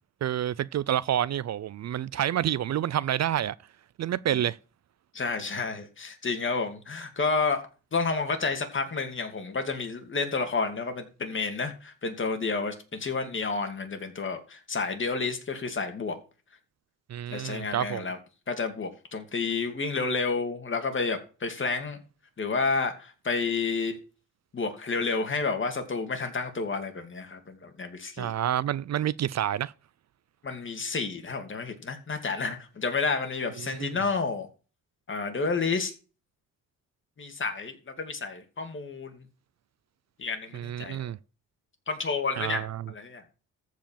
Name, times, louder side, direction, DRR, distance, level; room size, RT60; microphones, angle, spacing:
voice 1, 0.2-3.5 4.0-4.6 17.1-18.1 28.2-29.7 33.6-34.0 40.5-41.2 42.4-42.9, right 11 dB, 55° right, 0.5 m, -28 dB
voice 2, 5.1-7.7 7.9-16.2 17.3-18.2 18.5-22.0 22.4-24.0 24.5-28.3 30.4-34.5 35.1-35.9 37.2-39.2 40.2-41.1 41.9-43.2, left 4 dB, 35° left, 2.6 m, -30 dB
14.0 x 5.0 x 7.5 m
cardioid pair, 110°, 33 cm